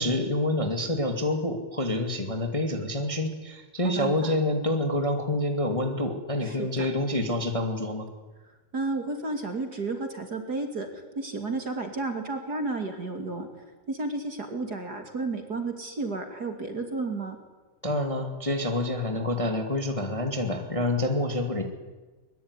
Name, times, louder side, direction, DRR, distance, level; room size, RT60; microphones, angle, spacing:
voice 1, 0.0-8.1 17.8-21.6, left 1 dB, 60° left, 4 dB, 0.3 m, -27 dB
voice 2, 3.8-4.3 6.4-6.9 8.7-13.5 13.9-17.4, right 3 dB, 30° right, 5 dB, 2.3 m, -32 dB
23.0 x 22.0 x 9.9 m, 1.2 s
omnidirectional pair, 5.3 m